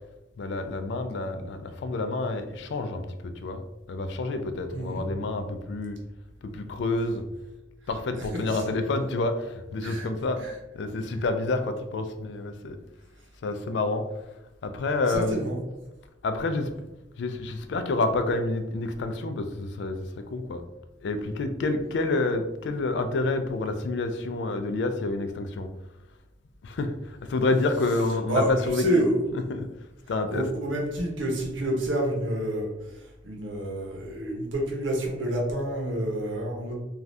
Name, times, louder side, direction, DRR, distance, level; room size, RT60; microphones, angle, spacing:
voice 1, 0.4-3.6 3.9-6.0 6.4-7.2 7.9-12.8 13.4-14.1 14.6-15.4 16.2-16.7 17.2-20.6 21.0-25.7 26.6-29.0 29.3-29.7 30.1-30.5, left 2 dB, 65° left, 8 dB, 0.3 m, -28 dB
voice 2, 4.7-5.0 8.5-8.6 9.8-10.1 10.3-10.5 15.1-15.6 28.3-28.5 28.7-29.2 30.3-36.7, right 1 dB, 85° right, 0 dB, 0.8 m, -28 dB
3.2 x 2.3 x 2.6 m, 0.98 s
head